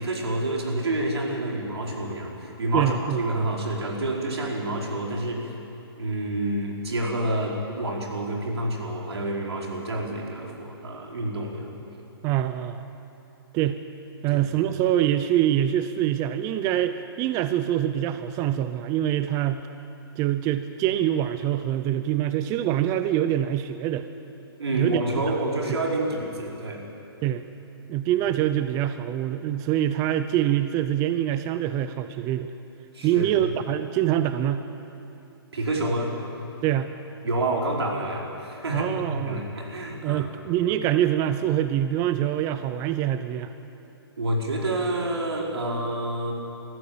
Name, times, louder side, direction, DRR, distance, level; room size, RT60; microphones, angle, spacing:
voice 1, 0.0-5.5 6.0-11.7 14.3-14.4 24.6-26.9 32.9-33.3 35.5-36.2 37.2-40.3 44.2-46.3, right 1 dB, 85° right, -1 dB, 4.4 m, -28 dB
voice 2, 2.7-3.2 12.2-12.8 13.5-13.8 14.2-19.6 20.2-24.1 24.7-25.0 27.2-27.4 27.9-32.5 33.0-34.7 36.6-36.9 38.7-39.4 40.0-43.5, right 12 dB, 25° right, 10 dB, 0.6 m, -25 dB
22.5 x 14.5 x 8.6 m, 2.9 s
hypercardioid pair, 140°, 13 cm